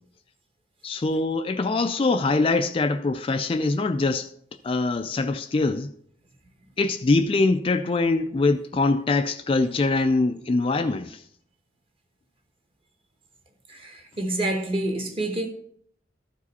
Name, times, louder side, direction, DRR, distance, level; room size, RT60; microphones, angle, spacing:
voice 1, 0.8-4.3 4.6-5.9 6.8-11.2, left 3 dB, 30° left, 0.3 m, -23 dB
voice 2, 13.7-15.5, right 1 dB, 30° right, 1.1 m, -28 dB
13.0 x 4.9 x 4.1 m
head